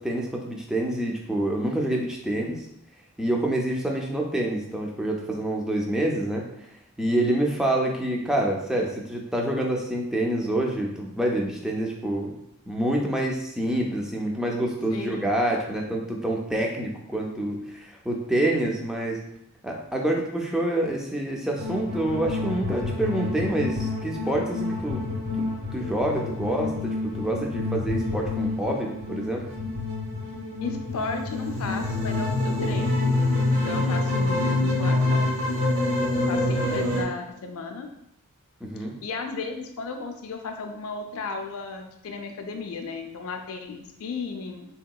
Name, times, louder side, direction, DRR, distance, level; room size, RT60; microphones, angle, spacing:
voice 1, 0.0-2.6 3.2-6.4 7.0-12.3 12.7-19.2 19.6-25.0 25.4-29.4 38.6-39.0, right 1 dB, 5° right, -1 dB, 0.4 m, -27 dB
voice 2, 14.9-15.3 30.6-33.1 33.5-35.3 36.1-37.9 39.0-44.6, left 4 dB, 70° left, 4 dB, 0.4 m, -34 dB
sound 1, 21.6-37.0, left 2 dB, 70° right, 1.4 m, -27 dB
3.6 x 2.8 x 2.3 m, 0.77 s
head